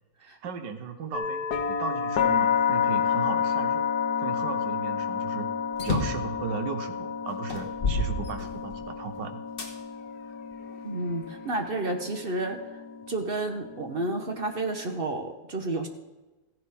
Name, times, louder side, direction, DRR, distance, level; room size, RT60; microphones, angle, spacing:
voice 1, 0.4-3.8 4.2-5.5 5.8-9.4, right 5 dB, 70° right, 7 dB, 1.6 m, -36 dB
sound 1, 1.1-15.0, left 7 dB, 60° left, 1.3 m, -30 dB
sound 2, 5.7-6.3 7.0-7.1 7.5-8.9 9.6-9.7 10.5-11.5, left 2 dB, 30° left, 1.5 m, -30 dB
voice 2, 10.8-15.9, right 2 dB, 40° right, 5 dB, 0.9 m, -31 dB
15.0 x 11.0 x 3.6 m, 1.1 s
omnidirectional pair, 2.0 m